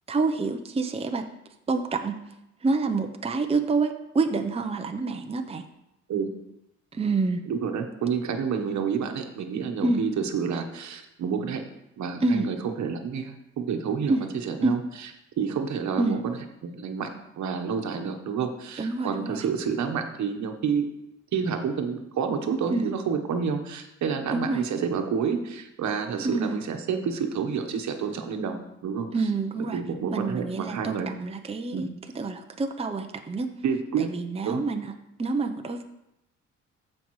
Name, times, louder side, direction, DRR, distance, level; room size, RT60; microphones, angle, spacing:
voice 1, 0.1-1.3 1.7-2.2 2.6-5.6 6.9-7.4 9.8-10.0 12.2-12.4 14.1-14.2 14.6-14.8 16.0-16.2 18.8-19.4 22.7-22.9 24.3-24.6 26.2-26.6 29.1-29.8 30.1-31.9 32.1-33.5 34.0-34.9 35.2-35.8, right 3 dB, 20° right, 5 dB, 0.7 m, -27 dB
voice 2, 7.5-11.6 12.0-14.2 14.4-14.8 15.4-16.3 16.6-17.1 17.4-20.8 21.3-28.6 28.8-29.1 29.7-31.1 31.7-31.8 33.6-34.1 34.4-34.6, right 6 dB, 65° right, 5 dB, 1.2 m, -29 dB
14.5 x 5.4 x 3.1 m, 0.86 s
cardioid pair, 90°, 30 cm